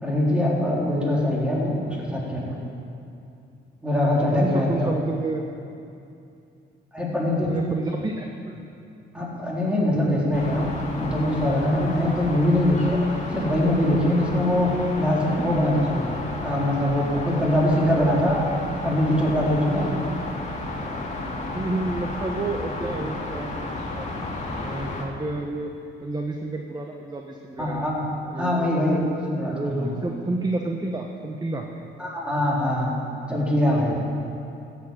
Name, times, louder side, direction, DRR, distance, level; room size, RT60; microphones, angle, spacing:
voice 1, 0.0-2.6 3.8-4.9 6.9-7.5 9.1-10.7 11.0-13.0 13.3-16.1 16.4-18.4 18.8-19.9 27.6-28.0 28.4-30.0 32.0-32.9 33.3-34.0, left 1 dB, 5° right, -5 dB, 4.1 m, -23 dB
voice 2, 4.3-5.4 7.5-8.6 20.0-20.1 21.5-24.1 24.6-25.7 26.0-27.8 28.3-29.0 29.4-31.7, right 2 dB, 20° right, 2 dB, 1.1 m, -30 dB
sound 1, 10.3-25.0, left 2 dB, 35° left, 2.4 m, -33 dB
14.0 x 8.6 x 7.7 m, 2.6 s
cardioid pair, 90°, 20 cm